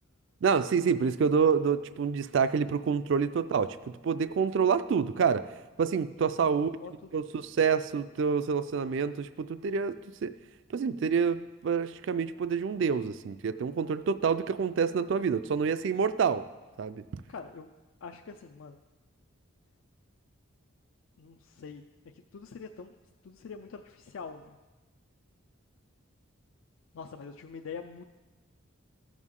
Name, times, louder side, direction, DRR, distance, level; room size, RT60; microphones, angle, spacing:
voice 1, 0.4-3.8 4.0-5.4 5.8-6.7 7.1-9.9 10.2-10.3 10.7-16.4 16.8-17.0, right 6 dB, 55° right, 12 dB, 0.3 m, -27 dB
voice 2, 6.8-7.2 17.3-17.7 18.0-18.8 21.2-21.8 22.1-22.9 23.2-24.6 26.9-28.0, left 5 dB, 65° left, 5 dB, 0.4 m, -44 dB
15.5 x 6.2 x 3.7 m, 1.2 s
head